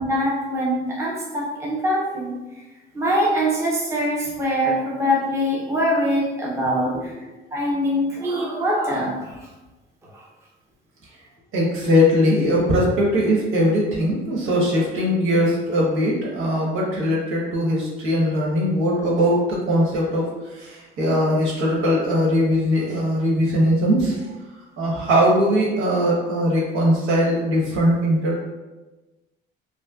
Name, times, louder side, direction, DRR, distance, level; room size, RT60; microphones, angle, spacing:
voice 1, 0.0-2.3 2.9-7.2 7.5-9.5 10.0-10.2, equal, 15° right, -4 dB, 0.7 m, -23 dB
voice 2, 11.5-20.2 20.5-24.3 24.8-28.4, equal, 85° right, -4 dB, 1.3 m, -20 dB
5.4 x 2.2 x 2.4 m, 1.1 s
cardioid pair, 150°, 21 cm